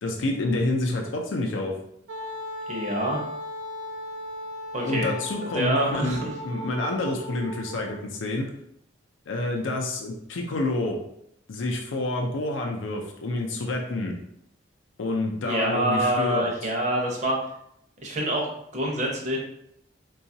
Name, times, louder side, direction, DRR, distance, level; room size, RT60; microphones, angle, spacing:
voice 1, 0.0-1.7 4.8-8.5 9.3-11.0 11.5-14.2 15.0-16.5, left 2 dB, 85° left, 1 dB, 0.5 m, -28 dB
Wind instrument woodwind instrument, 2.1-8.0, left 1 dB, 80° right, 0.4 m, -37 dB
voice 2, 2.7-3.2 4.7-5.1 5.5-6.3 15.4-17.4 18.0-18.5 18.7-19.4, right 1 dB, 40° right, -1 dB, 0.7 m, -26 dB
3.8 x 2.3 x 2.7 m, 0.75 s
head